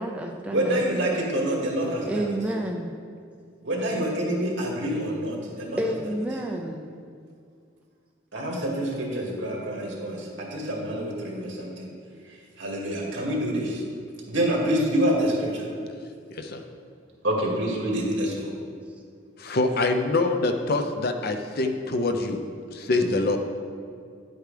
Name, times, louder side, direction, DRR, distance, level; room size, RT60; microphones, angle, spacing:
voice 1, 0.0-1.3 2.1-2.9 5.8-6.9, right 1 dB, 5° right, 0 dB, 0.4 m, -30 dB
voice 2, 0.5-2.3 3.6-5.8 8.3-11.9 12.6-13.8 14.3-15.7 17.2-18.5 22.9-23.1, right 1 dB, 65° right, -2 dB, 2.1 m, -27 dB
voice 3, 16.3-16.6 19.4-22.4 22.7-23.4, left 2 dB, 55° left, 6 dB, 0.6 m, -25 dB
10.5 x 8.1 x 3.4 m, 2.2 s
head